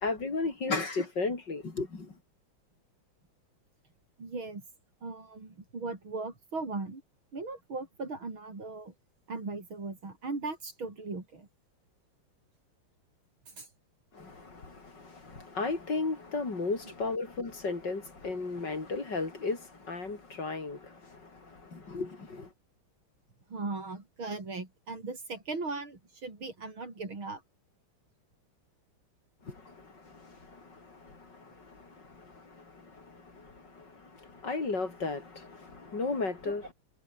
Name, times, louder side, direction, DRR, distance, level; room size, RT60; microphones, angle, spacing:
voice 1, 0.0-2.1 14.1-22.5 29.5-36.6, left 3 dB, 55° left, 4.4 m, -35 dB
voice 2, 4.2-4.6 5.0-7.0 7.3-8.9 9.3-11.5 13.6-13.7 23.5-27.4, right 3 dB, 75° right, 6.0 m, -38 dB
omnidirectional pair, 2.2 m